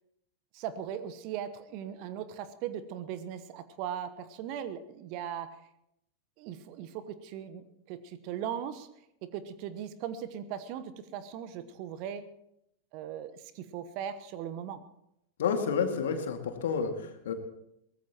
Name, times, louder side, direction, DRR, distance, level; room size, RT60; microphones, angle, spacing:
voice 1, 0.5-5.5 6.4-8.9 9.3-12.2 12.9-14.8, right 9 dB, 45° right, 13 dB, 1.1 m, -39 dB
voice 2, 15.4-17.3, left 6 dB, 60° left, 5 dB, 2.2 m, -30 dB
22.5 x 19.0 x 3.0 m, 0.80 s
figure-of-eight pair, 90°, 0 cm